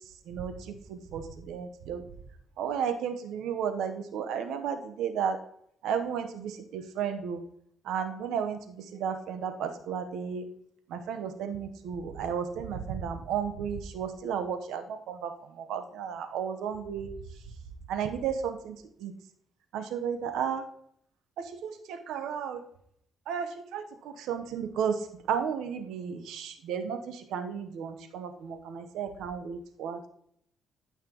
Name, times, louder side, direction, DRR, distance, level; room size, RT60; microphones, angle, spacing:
voice 1, 0.3-2.0 2.6-5.4 5.8-7.4 7.8-10.5 10.9-17.1 17.9-19.1 19.7-20.6 21.4-22.6 23.3-30.1, right 7 dB, 90° right, 7 dB, 0.9 m, -33 dB
12.5 x 5.8 x 3.0 m, 0.68 s
cardioid pair, 90°, 0 cm